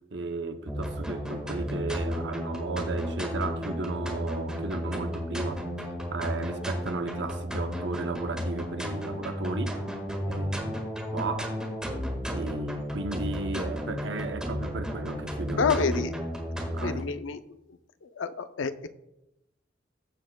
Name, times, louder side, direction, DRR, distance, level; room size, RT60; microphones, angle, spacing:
voice 1, 0.1-5.7 6.1-9.8 10.2-10.8 11.1-11.6 12.3-16.1 16.6-17.1, right 3 dB, 70° right, 0.7 m, -35 dB
sound 1, 0.7-17.0, equal, 5° right, 1.6 m, -33 dB
voice 2, 15.6-16.2 16.8-17.6 18.0-18.9, left 5 dB, 90° left, 0.5 m, -29 dB
15.0 x 7.4 x 2.2 m
head